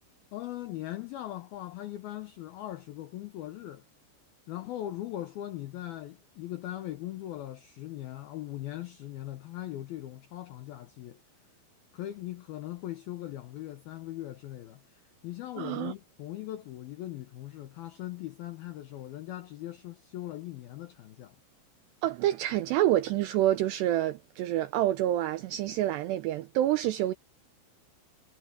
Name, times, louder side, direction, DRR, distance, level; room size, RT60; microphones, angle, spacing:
voice 1, 0.3-3.8 4.5-11.2 11.9-21.4, left 14 dB, 85° left, 2.2 m, -40 dB
voice 2, 15.6-15.9 22.0-27.1, right 13 dB, 85° right, 2.5 m, -27 dB
omnidirectional pair, 5.6 m